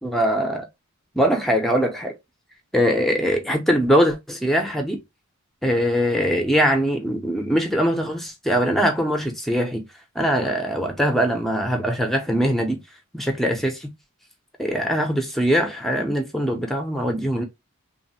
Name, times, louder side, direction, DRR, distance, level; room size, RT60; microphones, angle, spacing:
voice 1, 0.0-0.6 1.1-2.2 2.7-5.0 5.6-9.8 10.2-12.8 13.1-13.9 14.6-17.4, equal, ahead, 0.5 m, -22 dB
3.1 x 2.0 x 2.7 m
head